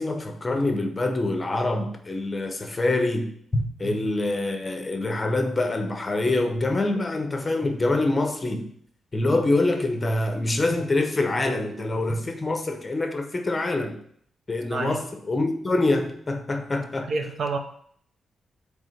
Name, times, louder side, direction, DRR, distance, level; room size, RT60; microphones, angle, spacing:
voice 1, 0.0-8.7 9.1-14.0 14.5-17.1, left 2 dB, 20° left, 0.8 m, -25 dB
voice 2, 17.1-17.6, right 4 dB, 50° right, 0.9 m, -29 dB
8.5 x 3.6 x 6.5 m
wide cardioid pair, 180°, 0 cm